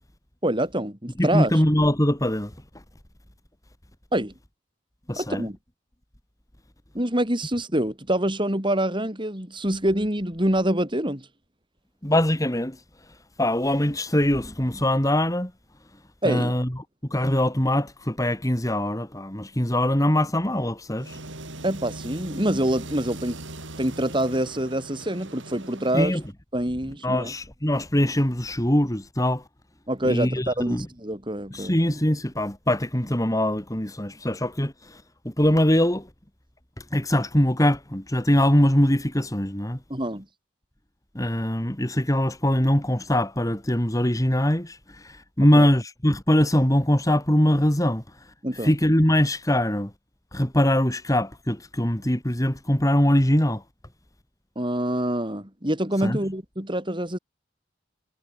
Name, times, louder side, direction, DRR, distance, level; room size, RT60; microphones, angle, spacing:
voice 1, 0.4-1.6 4.1-4.3 5.2-5.6 6.9-11.3 16.2-16.5 21.6-23.4 23.8-26.2 26.5-27.3 29.9-31.8 39.9-40.3 45.6-45.7 48.4-48.7 54.6-57.2, right 1 dB, 25° right, 5.7 m, -26 dB
voice 2, 1.2-2.5 5.1-5.5 12.0-12.8 13.4-15.5 16.2-16.8 17.1-21.2 25.9-26.2 27.0-29.4 30.0-30.9 31.5-36.1 36.8-39.8 41.1-49.9 50.3-53.6 56.0-56.2, left 1 dB, 15° left, 2.5 m, -22 dB
sound 1, 21.0-26.3, right 2 dB, 75° right, 6.3 m, -40 dB
head